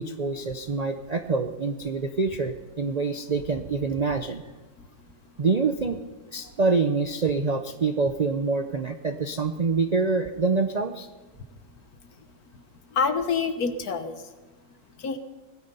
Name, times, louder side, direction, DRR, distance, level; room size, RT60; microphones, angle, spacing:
voice 1, 0.0-4.4 5.4-6.0 6.3-11.1, right 4 dB, 50° right, 7 dB, 0.5 m, -26 dB
voice 2, 12.9-14.3 15.0-15.2, left 5 dB, 70° left, 9 dB, 1.6 m, -27 dB
19.0 x 12.5 x 5.5 m, 1.2 s
omnidirectional pair, 1.7 m